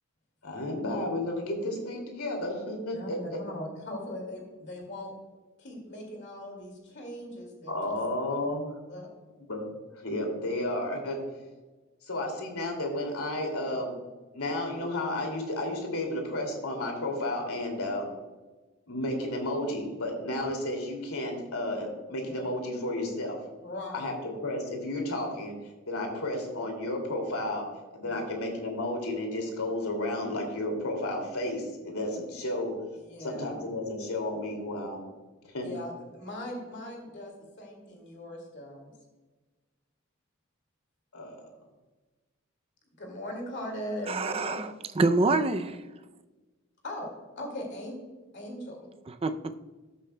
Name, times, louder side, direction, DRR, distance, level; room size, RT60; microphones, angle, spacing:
voice 1, 0.4-3.4 7.7-8.7 9.5-9.6 9.9-11.2 12.1-13.9 14.3-18.1 18.9-23.4 23.9-25.5 25.9-32.7 33.2-35.0 35.4-35.7 41.1-41.4, left 1 dB, 85° left, 2 dB, 2.5 m, -32 dB
voice 2, 2.9-5.1 5.6-8.0 8.9-9.1 22.4-22.5 23.6-24.1 28.0-28.2 33.0-33.6 35.6-38.9 43.0-44.6 46.8-47.1 47.4-47.9 48.3-48.8, left 1 dB, 55° left, 2 dB, 2.2 m, -39 dB
voice 3, 44.1-45.8 49.1-49.3, right 3 dB, 25° right, 9 dB, 0.4 m, -26 dB
14.5 x 8.4 x 2.2 m, 1.2 s
head